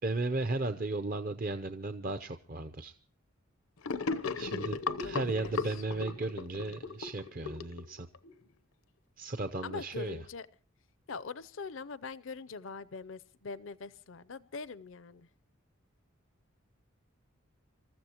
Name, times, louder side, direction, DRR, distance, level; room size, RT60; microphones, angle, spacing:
voice 1, 0.0-2.9 4.3-8.1 9.2-10.2, right 2 dB, 40° right, 9 dB, 0.7 m, -35 dB
Gurgling / Sink (filling or washing), 3.8-8.3, left 4 dB, 85° left, 0.9 m, -36 dB
voice 2, 4.9-5.8 9.6-10.5 11.1-15.3, left 4 dB, 65° left, 16 dB, 0.6 m, -43 dB
27.0 x 14.5 x 3.0 m, 0.42 s
head